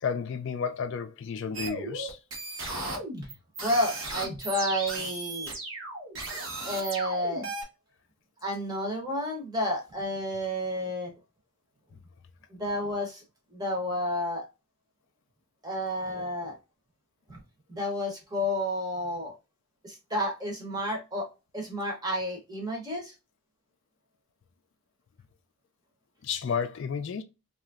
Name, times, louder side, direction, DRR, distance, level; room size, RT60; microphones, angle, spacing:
voice 1, 0.0-2.2 26.2-27.2, left 6 dB, 55° left, 0.3 m, -32 dB
sound 1, 1.5-7.6, right 2 dB, 60° right, 1.0 m, -36 dB
voice 2, 3.6-5.6 6.6-7.5 8.4-11.1 12.5-13.2 13.5-14.5 15.6-16.6 17.3-17.4 17.7-19.3 19.8-21.3 21.5-23.1, equal, 15° right, 0.7 m, -31 dB
2.9 x 2.4 x 2.3 m
head